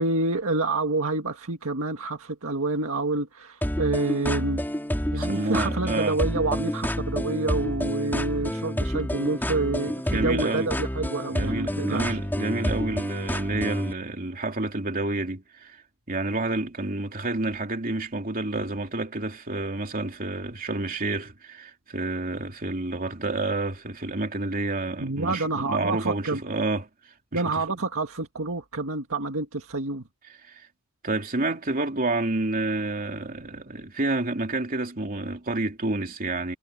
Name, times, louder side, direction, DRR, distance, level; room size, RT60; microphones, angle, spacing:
voice 1, 0.0-4.7 5.1-12.2 25.0-26.4 27.3-30.0, right 2 dB, 70° right, 1.8 m, -28 dB
sound 1, 3.6-13.9, equal, 10° left, 3.9 m, -29 dB
voice 2, 5.1-6.2 10.1-10.7 11.3-15.8 16.1-26.9 27.3-27.6 30.5-30.7 31.0-36.5, right 2 dB, 40° right, 3.1 m, -29 dB
head